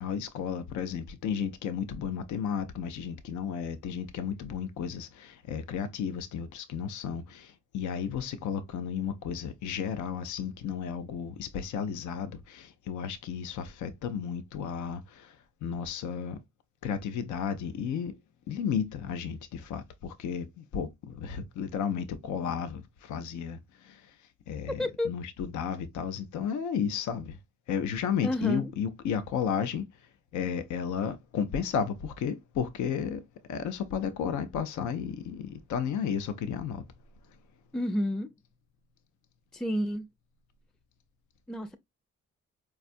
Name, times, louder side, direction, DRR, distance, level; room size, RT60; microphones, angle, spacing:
voice 1, 0.0-16.4 16.8-18.2 18.5-27.4 27.7-36.8, left 7 dB, 80° left, 0.5 m, -33 dB
voice 2, 24.8-25.1 28.2-28.7 37.7-38.3 39.5-40.1 41.5-41.8, left 1 dB, ahead, 0.4 m, -30 dB
4.4 x 2.3 x 2.4 m
supercardioid pair, 55°, 29 cm